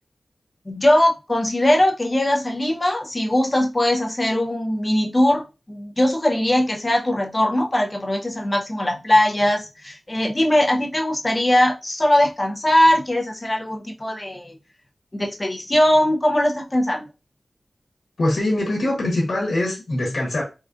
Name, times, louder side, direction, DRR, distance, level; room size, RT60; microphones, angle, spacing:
voice 1, 0.7-14.6 15.1-17.1, left 1 dB, 25° left, 0.6 m, -20 dB
voice 2, 18.2-20.4, left 1 dB, 85° left, 1.1 m, -23 dB
3.6 x 2.3 x 2.4 m
wide cardioid pair, 65°, 0 cm